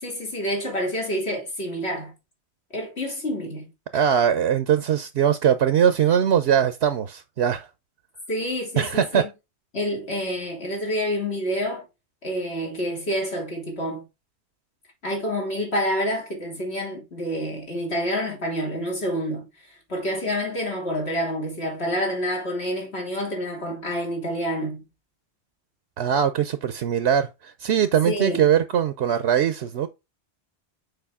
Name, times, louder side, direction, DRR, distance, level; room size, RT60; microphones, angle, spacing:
voice 1, 0.0-2.1 2.7-3.7 3.9-4.1 8.3-9.3 9.7-11.9 12.2-14.1 15.0-19.5 19.9-24.8 28.0-28.4, equal, 70° left, 3.4 m, -28 dB
voice 2, 3.9-7.7 8.8-9.2 26.0-29.9, right 9 dB, 75° right, 0.9 m, -21 dB
6.9 x 4.9 x 3.6 m
omnidirectional pair, 1.1 m